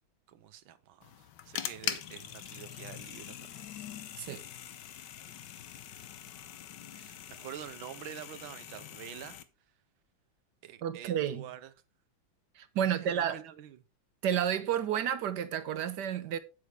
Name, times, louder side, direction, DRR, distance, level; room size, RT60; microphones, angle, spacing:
voice 1, 0.3-3.6 3.9-4.1 6.9-9.4 10.6-11.7 12.8-13.8, right 10 dB, 85° right, 1.6 m, -47 dB
sound 1, 1.0-9.4, left 10 dB, 65° left, 1.4 m, -43 dB
voice 2, 10.8-11.5 12.6-13.4 14.2-16.4, right 9 dB, 65° right, 1.2 m, -31 dB
9.3 x 8.4 x 3.4 m
omnidirectional pair, 2.1 m